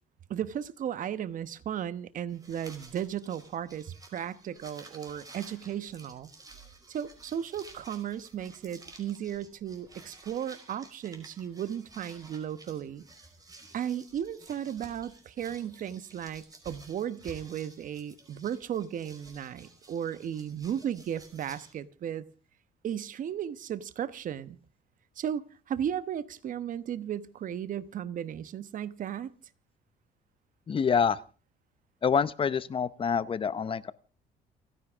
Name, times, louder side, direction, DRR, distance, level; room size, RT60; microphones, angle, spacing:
voice 1, 0.3-6.3 6.9-13.0 13.7-22.2 22.8-24.6 25.2-29.3, right 9 dB, 50° right, 1.1 m, -35 dB
sound 1, 2.3-21.7, right 3 dB, 20° right, 5.2 m, -53 dB
voice 2, 30.7-31.2 32.0-33.9, left 6 dB, 30° left, 0.8 m, -26 dB
29.5 x 10.0 x 3.6 m
cardioid pair, 110°, 17 cm